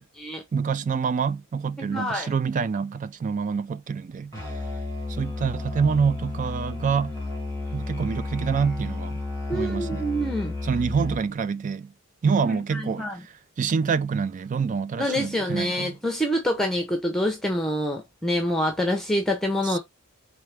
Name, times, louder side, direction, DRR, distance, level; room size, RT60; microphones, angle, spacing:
voice 1, 0.5-4.3 5.1-7.1 7.7-9.2 9.5-10.1 10.6-11.9 12.2-16.0 19.6-19.8, right 5 dB, 35° right, 0.3 m, -26 dB
voice 2, 1.8-2.3 9.5-10.5 12.5-13.2 15.0-19.8, equal, ahead, 0.7 m, -26 dB
Musical instrument, 4.3-11.3, left 2 dB, 20° right, 2.3 m, -32 dB
4.6 x 3.3 x 3.3 m
head